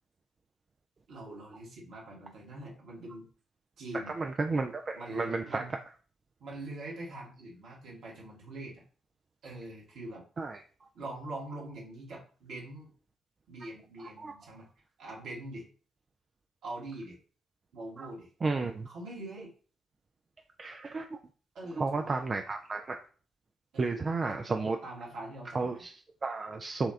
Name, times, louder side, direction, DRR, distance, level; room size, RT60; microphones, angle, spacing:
voice 1, 1.1-3.3 3.8-4.1 4.9-5.7 6.4-8.8 9.4-10.2 10.9-12.9 13.5-14.7 15.0-15.6 16.6-17.2 17.7-18.3 18.8-19.5 21.5-22.2 23.7-24.4 24.8-25.8, right 1 dB, 60° right, -2 dB, 1.2 m, -43 dB
voice 2, 4.1-5.6 10.4-10.6 14.0-14.3 18.0-18.1 18.4-18.9 20.6-21.2 21.7-23.0 23.8-24.8 25.5-26.9, right 3 dB, 35° right, 4 dB, 0.3 m, -32 dB
4.3 x 2.3 x 3.5 m, 0.40 s
figure-of-eight pair, 40°, 0 cm